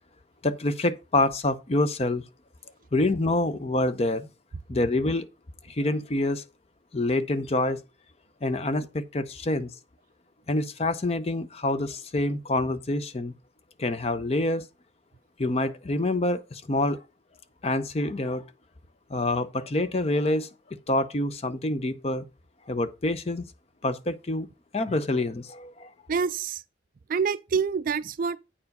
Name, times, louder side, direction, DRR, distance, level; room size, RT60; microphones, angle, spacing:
voice 1, 0.4-2.2 2.9-4.3 4.7-5.3 5.7-6.4 6.9-7.8 8.4-9.7 10.5-13.3 13.8-14.6 15.4-17.0 17.6-18.4 19.1-20.5 20.9-22.2 22.7-23.5 23.8-24.5 24.7-25.9, left 2 dB, 35° left, 0.6 m, -26 dB
voice 2, 26.1-26.6 27.1-28.4, right 6 dB, 45° right, 0.3 m, -26 dB
8.7 x 4.7 x 5.3 m
head